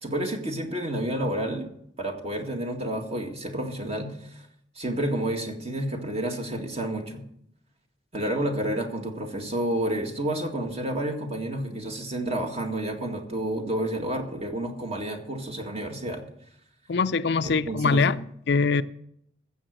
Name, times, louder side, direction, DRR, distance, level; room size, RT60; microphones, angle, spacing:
voice 1, 0.0-1.7 2.0-4.4 4.8-7.2 8.1-16.2 17.4-18.1, right 1 dB, 35° right, 1.9 m, -30 dB
voice 2, 16.9-18.8, left 4 dB, 65° left, 0.5 m, -23 dB
15.0 x 7.2 x 6.5 m
head